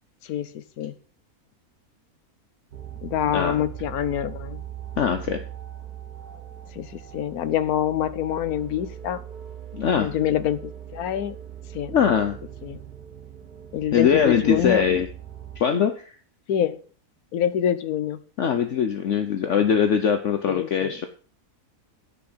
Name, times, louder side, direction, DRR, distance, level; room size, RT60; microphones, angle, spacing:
voice 1, 0.2-0.9 3.0-4.6 6.7-9.2 10.0-11.4 11.7-11.9 12.6-12.8 13.7-14.9 16.5-16.8 17.3-18.2 19.5-19.6 20.5-21.0, left 10 dB, 75° left, 14 dB, 1.3 m, -26 dB
sound 1, 2.7-15.6, right 10 dB, 85° right, 1.9 m, -40 dB
voice 2, 3.3-3.6 5.0-5.4 9.7-10.1 11.9-12.4 13.9-15.1 15.6-16.2 18.4-21.1, left 7 dB, 55° left, 8 dB, 1.1 m, -22 dB
9.7 x 5.8 x 7.8 m, 0.41 s
omnidirectional pair, 1.6 m